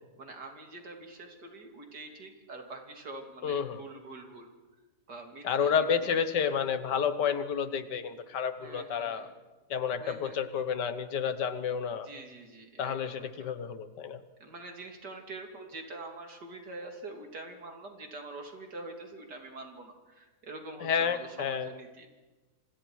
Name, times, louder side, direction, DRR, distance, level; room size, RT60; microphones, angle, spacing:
voice 1, 0.2-4.5 5.1-5.7 6.0-6.2 8.6-9.3 10.0-10.4 12.0-13.5 14.4-22.1, right 2 dB, 75° right, 3 dB, 3.5 m, -45 dB
voice 2, 3.4-3.8 5.4-9.3 9.7-12.1 12.8-14.2 20.8-21.7, left 7 dB, 80° left, 11 dB, 1.8 m, -30 dB
27.0 x 26.5 x 4.8 m, 1.2 s
omnidirectional pair, 1.8 m